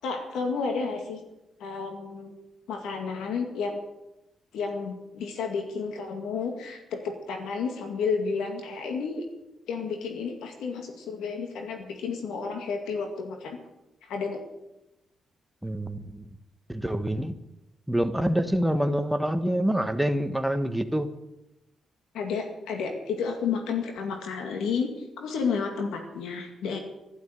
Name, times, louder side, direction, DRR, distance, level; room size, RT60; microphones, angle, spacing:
voice 1, 0.0-1.2 1.6-2.3 2.7-3.9 4.5-9.2 9.7-13.6 14.0-14.4 22.1-24.9 25.2-26.8, left 5 dB, 90° left, 4 dB, 2.1 m, -31 dB
voice 2, 15.6-16.2 16.7-17.3 17.9-21.1, equal, 5° right, 8 dB, 1.3 m, -26 dB
12.0 x 12.0 x 8.0 m, 0.92 s
cardioid pair, 85°, 0 cm